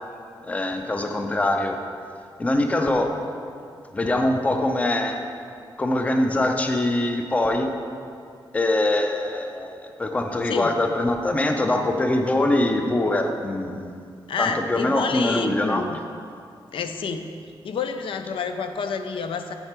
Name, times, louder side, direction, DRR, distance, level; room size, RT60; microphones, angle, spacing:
voice 1, 0.4-1.8 2.4-3.2 3.9-5.2 5.8-7.7 8.5-13.9 14.4-15.9, left 1 dB, 15° left, 5 dB, 0.4 m, -23 dB
voice 2, 14.3-16.0 16.7-17.3 17.6-19.5, left 5 dB, 85° left, 7 dB, 0.4 m, -29 dB
7.8 x 5.8 x 4.3 m, 2.3 s
wide cardioid pair, 180°, 9 cm